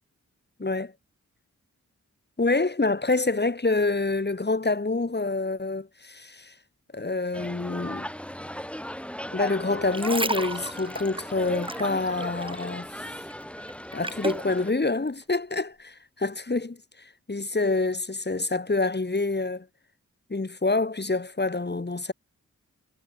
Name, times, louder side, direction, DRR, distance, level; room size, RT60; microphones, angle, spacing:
voice 1, 2.4-6.5 6.9-8.1 9.3-12.9 13.9-19.6 20.3-22.1, left 3 dB, 30° left, 3.3 m, -27 dB
sound 1, 7.3-14.7, equal, 5° left, 1.7 m, -37 dB
sound 2, 9.7-12.8 13.1-14.5 15.1-15.2, right 2 dB, 15° right, 1.4 m, -33 dB
cardioid pair, 45°, 32 cm